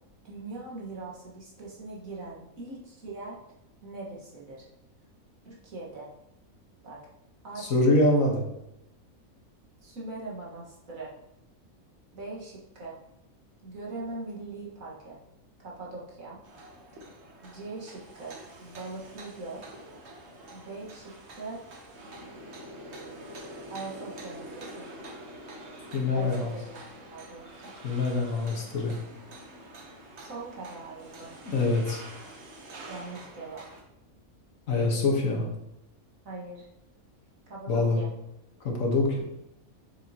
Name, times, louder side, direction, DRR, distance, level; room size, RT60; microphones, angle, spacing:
voice 1, 0.2-3.4 3.8-4.7 5.4-6.1 6.8-7.0 7.4-7.7 9.8-11.1 12.1-13.0 13.6-15.2 15.6-16.4 17.4-19.6 20.5-21.6 23.7-24.9 26.1-27.7 30.2-31.3 32.9-33.6 36.3-36.7 37.5-38.1, right 3 dB, 70° right, -4 dB, 2.1 m, -41 dB
voice 2, 7.6-8.5 25.9-26.5 27.8-28.9 31.4-32.0 34.7-35.5 37.7-38.0 38.6-39.2, left 2 dB, 70° left, 0 dB, 1.8 m, -25 dB
sound 1, 16.4-33.8, right 1 dB, 50° right, 1.3 m, -46 dB
7.0 x 6.9 x 3.0 m, 0.84 s
omnidirectional pair, 1.5 m